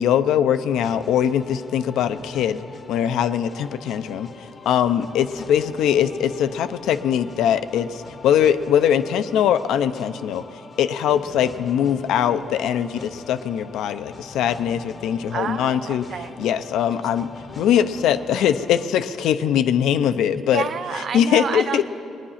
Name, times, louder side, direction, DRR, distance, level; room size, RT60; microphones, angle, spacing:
voice 1, 0.0-4.3 4.7-10.4 10.8-16.1 16.4-17.3 17.6-20.6 21.1-21.8, left 9 dB, 85° left, 12 dB, 0.5 m, -21 dB
sound 1, 0.7-18.9, left 4 dB, 40° left, 0.7 m, -43 dB
voice 2, 15.3-16.4 20.5-21.8, right 7 dB, 60° right, 9 dB, 0.3 m, -29 dB
20.5 x 9.7 x 5.7 m, 2.7 s
cardioid pair, 90°, 0 cm